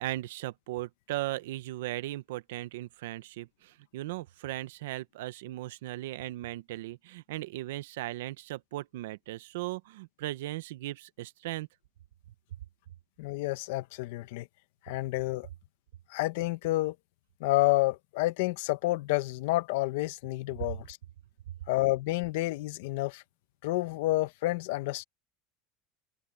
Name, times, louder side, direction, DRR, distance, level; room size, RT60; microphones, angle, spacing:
voice 1, 0.0-11.7, right 16 dB, 90° right, 0.9 m, -37 dB
voice 2, 13.2-14.5 14.9-15.5 16.1-16.9 17.4-21.0 21.7-23.2 23.6-25.0, left 18 dB, 75° left, 1.0 m, -29 dB
open air
supercardioid pair, 140°, 0 cm